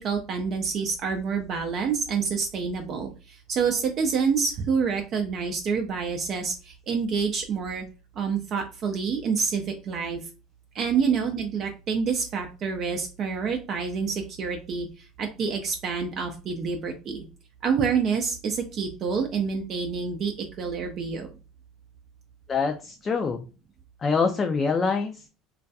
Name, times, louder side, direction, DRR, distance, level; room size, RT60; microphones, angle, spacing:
voice 1, 0.0-7.8 8.2-10.2 10.7-17.2 17.6-21.3, right 5 dB, 50° right, 3 dB, 0.4 m, -27 dB
voice 2, 22.5-23.5 24.0-25.3, left 5 dB, 30° left, 5 dB, 0.3 m, -25 dB
2.3 x 2.2 x 2.6 m, 0.33 s
supercardioid pair, 90°, 0 cm